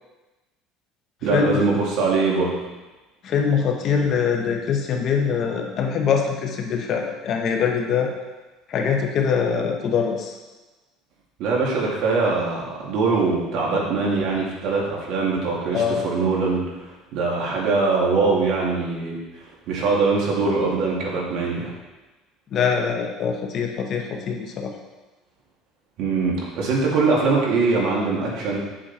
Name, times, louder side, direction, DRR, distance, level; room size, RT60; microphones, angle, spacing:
voice 1, 1.2-2.7 11.4-21.7 26.0-28.6, right 4 dB, 60° right, -3 dB, 2.6 m, -22 dB
voice 2, 3.2-8.1 8.7-10.3 15.7-16.0 22.5-24.7, left 6 dB, 40° left, 2 dB, 1.2 m, -23 dB
8.3 x 7.6 x 4.4 m, 1.1 s
cardioid pair, 155°, 0 cm